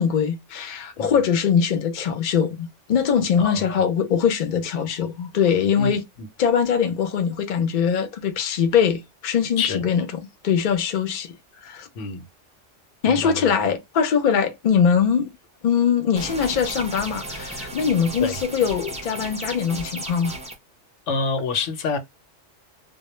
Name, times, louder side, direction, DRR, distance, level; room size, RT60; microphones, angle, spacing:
voice 1, 0.0-6.0 6.4-11.4 11.6-11.9 13.0-15.3 15.6-20.4, left 7 dB, 50° left, 0.6 m, -22 dB
voice 2, 13.1-13.5 18.2-18.3 21.1-22.0, left 4 dB, 85° left, 1.0 m, -26 dB
sound 1, 16.2-20.5, right 1 dB, 10° right, 0.4 m, -35 dB
2.2 x 2.2 x 3.0 m
omnidirectional pair, 1.2 m